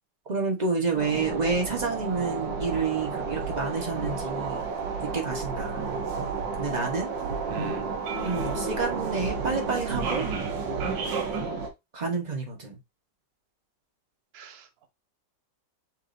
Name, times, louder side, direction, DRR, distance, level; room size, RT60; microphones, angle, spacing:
voice 1, 0.3-4.6 5.0-5.9 6.5-7.1 8.2-10.3 11.9-12.8, right 4 dB, 30° right, 0.9 m, -29 dB
sound 1, 0.9-11.7, right 4 dB, 90° right, 1.7 m, -31 dB
voice 2, 7.5-7.9 14.3-14.9, right 5 dB, 50° right, 0.7 m, -41 dB
7.2 x 2.7 x 2.6 m
omnidirectional pair, 2.0 m